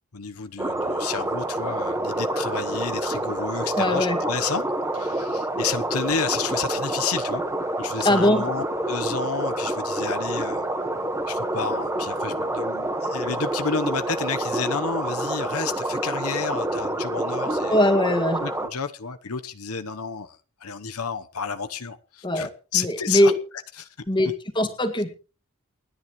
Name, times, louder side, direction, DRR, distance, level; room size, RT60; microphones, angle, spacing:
voice 1, 0.1-4.6 4.9-7.4 7.8-10.6 11.3-17.9 18.4-23.3 23.8-23.9, left 6 dB, 85° left, 1.0 m, -31 dB
sound 1, 0.6-18.7, right 1 dB, 15° right, 1.4 m, -27 dB
voice 2, 3.7-4.2 8.0-8.4 17.7-18.4 22.2-23.3 24.1-25.1, left 1 dB, 20° left, 2.0 m, -21 dB
28.5 x 10.5 x 3.2 m
head